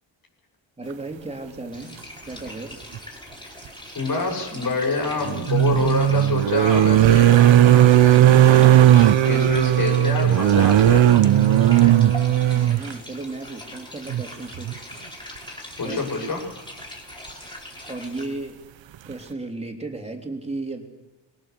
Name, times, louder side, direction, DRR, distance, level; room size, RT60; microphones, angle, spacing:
voice 1, 0.8-2.0 2.2-2.9 12.5-14.8 15.8-16.0 17.9-18.6 19.1-20.8, right 2 dB, 15° right, 2 dB, 3.5 m, -34 dB
sound 1, 1.7-18.3, left 1 dB, 10° left, 4.8 m, -41 dB
sound 2, 2.9-3.0 5.2-12.9 14.1-14.2 14.6-14.7, right 12 dB, 80° right, 0.9 m, -16 dB
voice 2, 4.0-12.0 15.8-16.5, left 3 dB, 50° left, 2 dB, 6.9 m, -27 dB
26.0 x 22.0 x 6.9 m, 1.0 s
cardioid pair, 110°, 44 cm